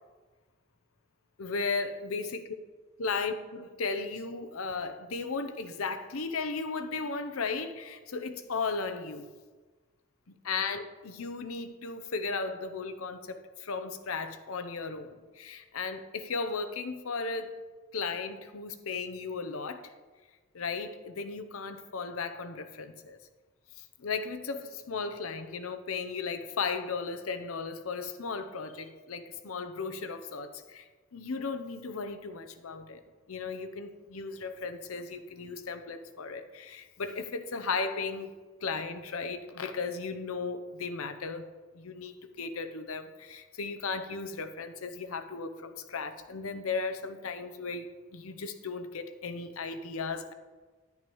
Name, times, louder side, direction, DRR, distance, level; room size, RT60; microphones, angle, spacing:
voice 1, 1.4-2.4 3.0-9.3 10.3-17.6 17.9-19.9 20.5-23.2 23.8-30.8 31.1-33.0 33.3-38.3 38.6-41.5 41.7-47.9 48.1-50.3, left 4 dB, 80° left, 9 dB, 0.7 m, -36 dB
10.5 x 10.5 x 3.1 m, 1.3 s
head